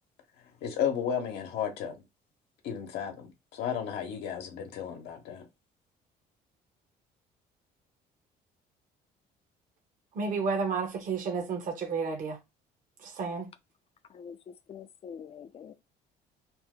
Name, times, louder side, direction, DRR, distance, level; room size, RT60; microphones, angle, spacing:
voice 1, 0.6-1.9 2.6-5.4, left 8 dB, 80° left, 0.8 m, -33 dB
voice 2, 10.1-12.4 13.0-13.5, right 5 dB, 50° right, 0.8 m, -31 dB
voice 3, 14.1-15.7, left 7 dB, 35° left, 0.4 m, -45 dB
2.8 x 2.0 x 3.5 m
cardioid pair, 110°, 17 cm